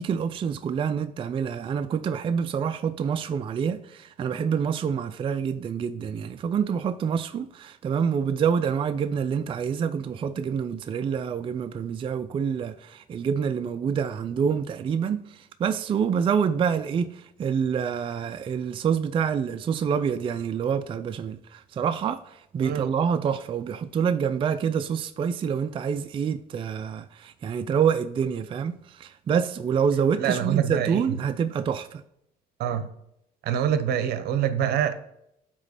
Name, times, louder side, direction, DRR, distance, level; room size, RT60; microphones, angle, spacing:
voice 1, 0.0-32.0, right 7 dB, 30° right, 0.3 m, -27 dB
voice 2, 30.2-31.2 32.6-32.9 33.4-35.0, right 9 dB, 70° right, 0.7 m, -25 dB
8.3 x 3.0 x 4.9 m
cardioid pair, 110°, 17 cm